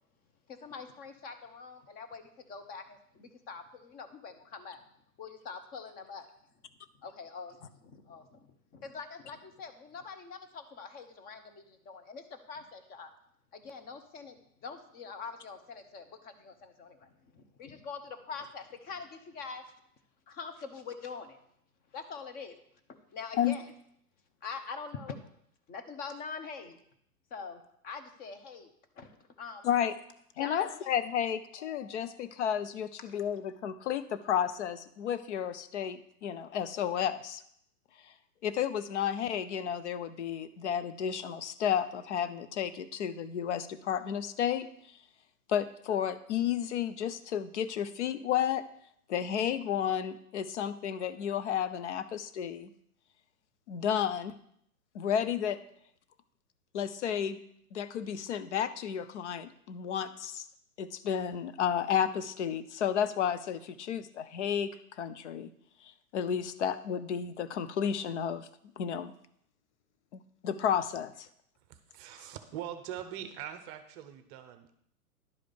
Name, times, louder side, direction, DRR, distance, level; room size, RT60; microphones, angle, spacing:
voice 1, 0.5-4.8 5.2-6.3 7.0-13.1 13.5-19.7 20.3-21.4 21.9-22.5 22.9-23.7 24.4-25.2 25.7-26.8 27.3-28.7 28.9-29.7 30.3-30.9 31.6-32.2, left 5 dB, 20° left, 7 dB, 0.9 m, -44 dB
voice 2, 30.4-37.4 38.4-44.7 45.5-48.6 49.1-52.7 53.7-54.4 54.9-55.6 56.7-57.4 57.7-60.5 60.8-65.5 65.8-68.5 68.8-69.1 70.1-71.3, left 9 dB, 50° left, 12 dB, 0.8 m, -32 dB
voice 3, 71.7-74.8, right 10 dB, 25° right, 9 dB, 0.8 m, -42 dB
11.0 x 5.1 x 6.6 m, 0.70 s
figure-of-eight pair, 110°, 46 cm